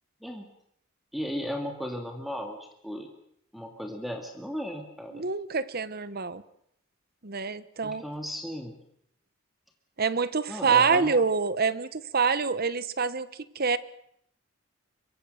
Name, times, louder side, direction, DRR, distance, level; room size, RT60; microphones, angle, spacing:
voice 1, 1.1-3.1 3.5-5.2 7.8-8.8 10.5-11.2, equal, ahead, 3 dB, 2.1 m, -36 dB
voice 2, 5.1-6.4 7.2-8.0 10.0-13.3 13.5-13.8, right 5 dB, 45° right, 15 dB, 1.1 m, -26 dB
24.0 x 24.0 x 6.5 m, 0.71 s
head